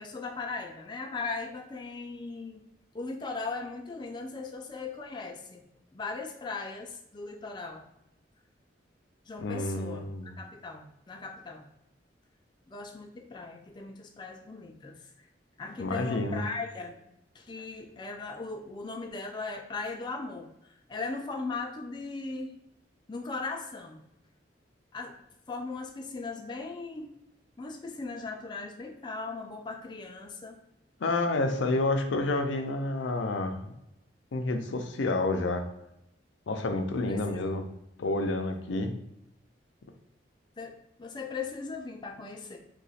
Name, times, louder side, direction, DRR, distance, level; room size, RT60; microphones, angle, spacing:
voice 1, 0.0-2.6 2.9-5.6 5.9-7.9 9.3-11.7 12.7-15.3 15.6-17.0 17.3-22.5 23.1-24.0 24.9-25.1 25.5-27.1 27.6-30.6 37.0-37.5 40.6-42.6, left 3 dB, 25° left, 2 dB, 0.3 m, -38 dB
voice 2, 9.4-10.3 15.8-16.4 31.0-33.7 34.3-35.7 36.5-37.6 38.0-38.9, left 2 dB, 85° left, 5 dB, 0.5 m, -29 dB
2.9 x 2.3 x 4.1 m, 0.82 s
head